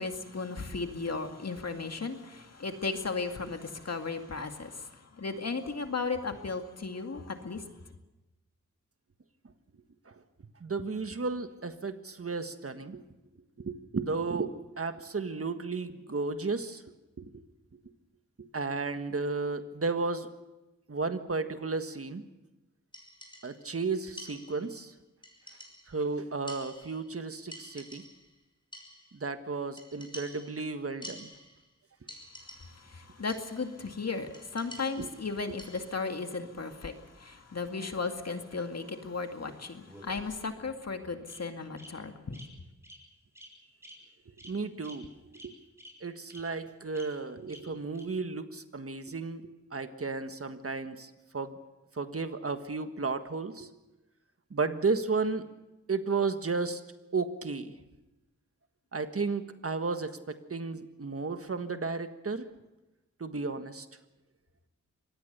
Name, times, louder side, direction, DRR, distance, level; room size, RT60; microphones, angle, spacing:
voice 1, 0.0-7.6 32.6-42.4, left 4 dB, 55° left, 2.2 m, -35 dB
voice 2, 10.6-13.0 13.6-16.8 17.2-17.3 17.7-17.8 18.4-20.3 20.9-22.2 23.4-24.9 25.9-28.0 29.1-31.3 35.0-35.1 35.5-35.6 44.4-45.1 45.4-45.5 46.0-51.6 51.9-53.7 54.5-55.5 55.9-56.8 57.1-57.8 58.9-62.5 63.2-63.9, right 4 dB, 50° right, 1.6 m, -33 dB
sound 1, 22.9-23.7 24.2-24.8 25.2-26.1 26.5-27.2 27.5-28.4 28.7-29.3 29.8-31.7 32.1-32.9 33.3-33.8 34.3-36.1, equal, 15° left, 6.0 m, -49 dB
Bird vocalization bird call bird song, 39.8-40.6 41.3-41.4 41.8-41.9 42.3-42.4 42.8-43.0 43.3-43.5 43.8-43.9 44.4-44.5 44.8-44.9 45.3-45.4 45.8-45.9 46.3-46.4 46.9-47.0 47.5-47.6 47.9-48.0, equal, 10° right, 6.7 m, -50 dB
25.0 x 19.5 x 6.8 m
wide cardioid pair, 70°, 30 cm